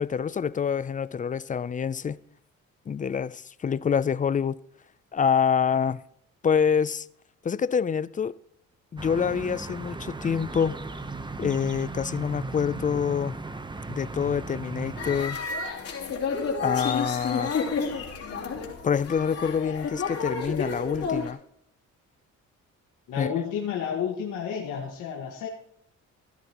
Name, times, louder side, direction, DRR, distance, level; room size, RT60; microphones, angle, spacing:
voice 1, 0.0-2.2 2.9-4.6 5.1-6.0 6.4-7.1 7.4-8.4 8.9-10.8 11.4-13.3 13.9-15.4 16.6-17.6 18.8-21.4 23.2-23.3, left 7 dB, 25° left, 0.4 m, -26 dB
sound 1, 9.0-15.2, right 3 dB, 15° right, 0.8 m, -36 dB
sound 2, 15.0-21.3, left 5 dB, 50° left, 3.4 m, -30 dB
voice 2, 23.1-25.5, left 8 dB, 85° left, 1.7 m, -31 dB
15.5 x 11.5 x 3.0 m
cardioid pair, 90°, 30 cm